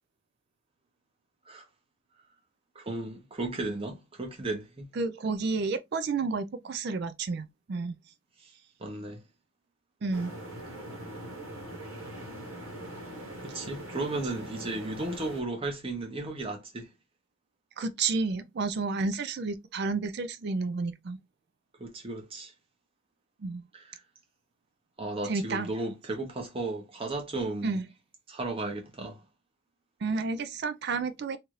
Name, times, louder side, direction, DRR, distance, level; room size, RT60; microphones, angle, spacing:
voice 1, 2.7-4.9 8.8-9.2 13.4-16.9 21.8-22.5 23.7-23.9 25.0-27.8 28.3-29.2, right 2 dB, 25° right, 0.8 m, -35 dB
voice 2, 5.0-8.0 10.0-10.3 17.8-21.2 23.4-23.6 25.3-25.7 27.6-27.8 30.0-31.4, right 4 dB, 50° right, 0.4 m, -31 dB
sound 1, 10.1-15.4, right 1 dB, 85° right, 1.1 m, -42 dB
2.8 x 2.4 x 3.1 m
head